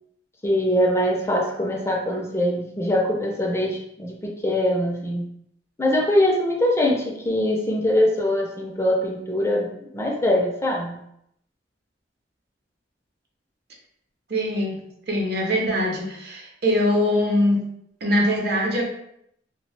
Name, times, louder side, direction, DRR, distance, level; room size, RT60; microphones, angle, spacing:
voice 1, 0.4-5.3 5.8-11.0, left 1 dB, 15° left, -1 dB, 0.3 m, -23 dB
voice 2, 14.3-14.8 15.1-17.6 18.0-18.8, left 1 dB, 60° right, 0 dB, 0.6 m, -22 dB
2.7 x 2.0 x 3.1 m, 0.74 s
head